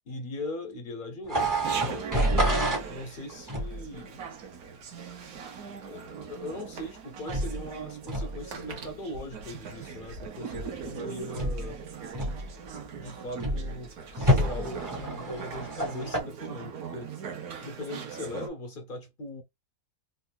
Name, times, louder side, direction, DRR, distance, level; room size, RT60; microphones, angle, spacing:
voice 1, 0.1-2.1 2.9-4.2 5.7-11.8 12.9-17.1 17.6-19.4, left 1 dB, 45° left, 0.8 m, -40 dB
sound 1, 1.3-2.9 3.5-3.9 7.3-7.6 8.1-8.4 10.5-10.9 11.4-11.7 12.1-12.7 13.4-13.7 14.2-16.2, equal, 15° right, 0.8 m, -28 dB
Chatter, 1.4-18.5, right 6 dB, 75° right, 1.3 m, -40 dB
sound 2, 5.2-5.3 6.1-6.2 6.4-6.5 7.5-7.6 8.0-10.3, right 3 dB, 60° right, 1.1 m, -45 dB
4.0 x 2.5 x 2.2 m
omnidirectional pair, 1.6 m